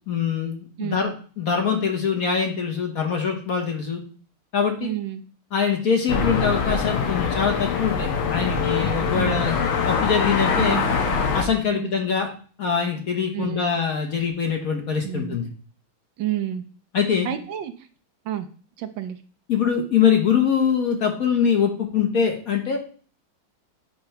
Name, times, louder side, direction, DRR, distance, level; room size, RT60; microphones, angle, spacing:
voice 1, 0.1-4.0 4.5-4.9 5.5-9.6 9.8-10.8 11.3-12.3 12.6-15.5 16.9-17.3 19.5-22.8, left 7 dB, 55° left, 3 dB, 1.3 m, -23 dB
voice 2, 4.8-5.2 9.2-9.4 10.6-10.9 11.7-11.9 13.3-13.7 15.0-15.4 16.2-16.6 17.2-17.7 18.3-18.5 18.8-19.2, right 12 dB, 75° right, 9 dB, 1.3 m, -29 dB
sound 1, 6.1-11.4, left 5 dB, 85° left, 1.8 m, -23 dB
8.7 x 3.0 x 5.6 m, 0.42 s
omnidirectional pair, 2.2 m